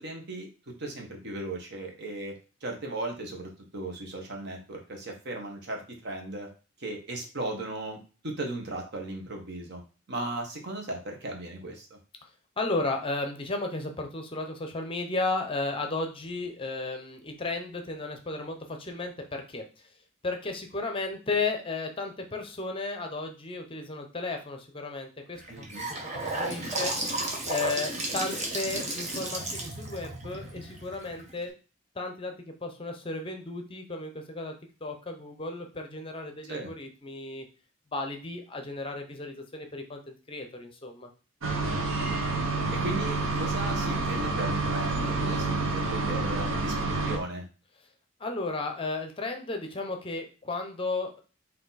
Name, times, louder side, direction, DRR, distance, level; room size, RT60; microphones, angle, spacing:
voice 1, 0.0-2.3 2.6-6.5 6.8-8.0 8.2-9.8 10.1-12.0 25.5-25.9 36.5-36.7 41.6-42.2 42.7-47.4, right 2 dB, 55° right, 2 dB, 1.1 m, -37 dB
voice 2, 12.6-19.6 20.2-26.0 26.2-26.9 27.5-31.5 32.0-34.5 34.8-37.4 37.9-41.1 48.2-51.2, left 3 dB, 25° left, 5 dB, 0.6 m, -34 dB
Gurgling / Sink (filling or washing) / Bathtub (filling or washing), 25.4-31.4, right 2 dB, 35° right, 1.0 m, -33 dB
sound 1, 41.4-47.2, right 3 dB, 90° right, 0.9 m, -28 dB
4.2 x 2.7 x 4.0 m, 0.34 s
head